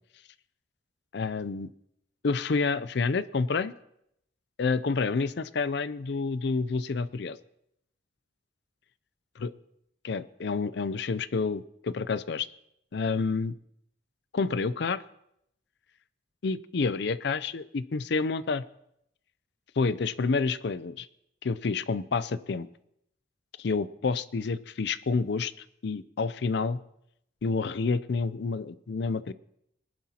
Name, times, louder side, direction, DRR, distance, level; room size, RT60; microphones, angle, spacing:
voice 1, 1.1-1.7 2.2-3.7 4.6-7.4 9.4-9.5 10.0-12.5 12.9-13.5 14.3-15.0 16.4-18.6 19.8-21.1 21.4-22.7 23.6-25.5 25.8-26.8 27.4-29.3, left 4 dB, 60° left, 16 dB, 0.5 m, -29 dB
20.5 x 11.5 x 2.9 m, 0.76 s
head